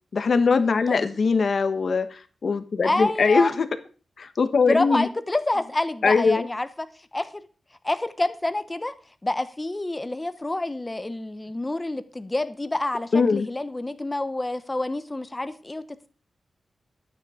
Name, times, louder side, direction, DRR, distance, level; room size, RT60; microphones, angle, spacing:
voice 1, 0.1-3.6 4.2-5.1 6.0-6.4 13.1-13.5, left 4 dB, 50° left, 9 dB, 1.2 m, -21 dB
voice 2, 2.8-3.5 4.7-6.9 7.1-7.3 7.8-8.9 9.2-16.1, left 2 dB, 15° left, 11 dB, 0.9 m, -27 dB
12.0 x 9.7 x 5.0 m, 0.38 s
wide cardioid pair, 170°, 0 cm